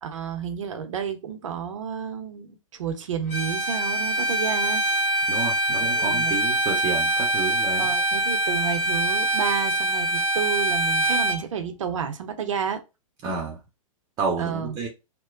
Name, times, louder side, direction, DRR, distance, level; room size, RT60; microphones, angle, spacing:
voice 1, 0.0-4.8 6.0-6.3 7.8-12.8 14.4-14.7, right 7 dB, 65° right, 0.6 m, -30 dB
Bowed string instrument, 3.3-11.4, right 1 dB, 35° left, 1.0 m, -24 dB
voice 2, 5.3-7.9 13.2-13.6 14.2-14.9, right 4 dB, 25° right, 0.6 m, -30 dB
2.9 x 2.1 x 2.4 m
figure-of-eight pair, 110°, 18 cm